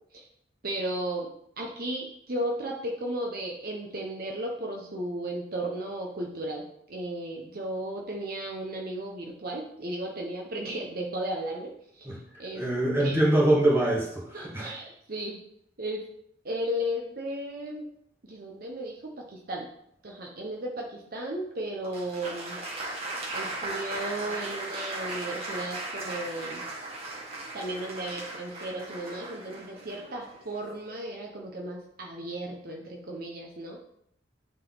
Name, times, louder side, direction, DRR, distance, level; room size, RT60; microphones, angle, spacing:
voice 1, 0.6-1.3 1.6-12.1 12.4-12.6 13.0-13.2 14.3-15.4 15.8-16.0 16.4-17.8 18.3-19.7 20.0-22.6 23.3-26.6 27.5-33.8, right 1 dB, 55° right, 0 dB, 1.0 m, -35 dB
voice 2, 12.5-14.7, right 1 dB, 15° right, -5 dB, 2.2 m, -24 dB
Applause, 21.8-30.8, right 2 dB, 35° right, 1.8 m, -37 dB
9.7 x 4.1 x 4.0 m, 0.71 s
head